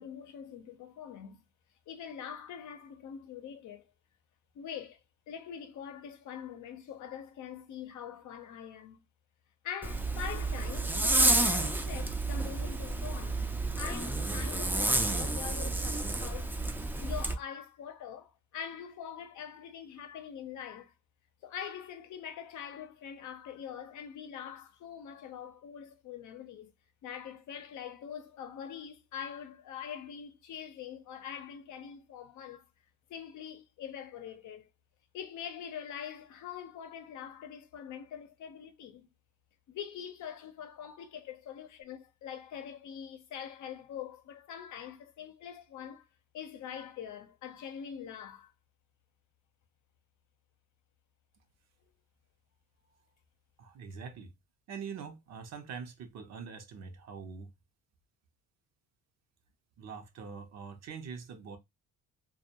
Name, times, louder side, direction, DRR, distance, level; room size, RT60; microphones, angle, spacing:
voice 1, 0.0-1.4 1.9-3.9 4.5-5.0 5.3-9.0 9.6-16.5 17.0-20.9 21.4-26.7 27.0-32.6 33.1-34.7 35.1-39.1 39.7-46.0 46.3-48.5, left 8 dB, 75° left, 0.6 m, -44 dB
Zipper (clothing), 9.8-17.3, right 2 dB, 5° right, 0.4 m, -30 dB
voice 2, 53.6-54.3 54.7-57.5 59.8-61.6, right 6 dB, 60° right, 0.7 m, -44 dB
2.3 x 2.1 x 2.8 m
cardioid pair, 90°, 30 cm